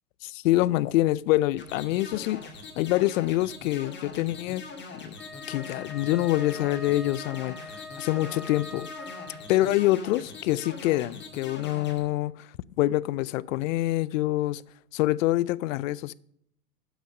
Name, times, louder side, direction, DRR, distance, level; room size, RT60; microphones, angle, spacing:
voice 1, 0.2-4.6 5.0-5.1 5.5-8.9 9.5-12.5 12.8-14.6 14.9-16.1, left 16 dB, 60° left, 0.5 m, -26 dB
sound 1, 1.6-12.0, left 4 dB, 25° left, 2.0 m, -42 dB
Wind instrument woodwind instrument, 5.2-9.7, left 3 dB, ahead, 0.5 m, -43 dB
8.1 x 6.3 x 5.3 m
hypercardioid pair, 115°, 44 cm